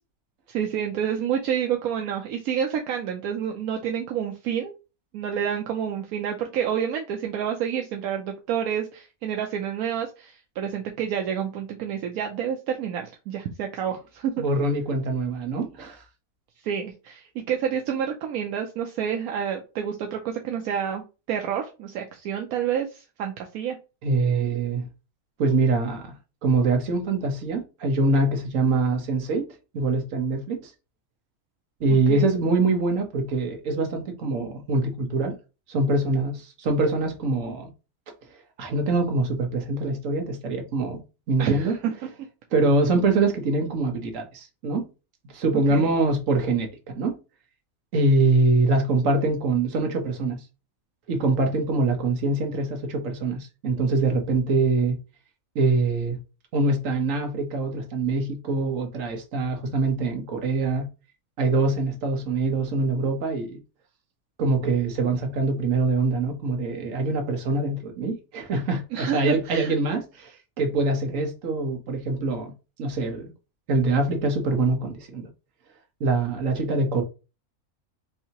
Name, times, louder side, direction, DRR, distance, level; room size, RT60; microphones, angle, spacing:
voice 1, 0.5-4.7 5.1-14.4 16.6-23.8 32.1-32.2 41.4-41.9 45.7-45.9 68.9-69.7, right 8 dB, 80° right, 1.1 m, -29 dB
voice 2, 14.4-16.0 24.0-24.9 25.4-26.1 26.4-29.5 29.7-30.7 31.8-35.3 35.7-37.7 38.6-41.0 41.3-41.8 42.5-44.9 45.3-47.2 47.9-50.4 51.1-55.0 55.5-56.2 56.5-60.9 61.4-63.6 64.4-72.5 72.8-73.3 73.7-75.3 76.0-77.0, right 3 dB, 65° right, 1.3 m, -24 dB
4.6 x 2.7 x 2.8 m
omnidirectional pair, 1.5 m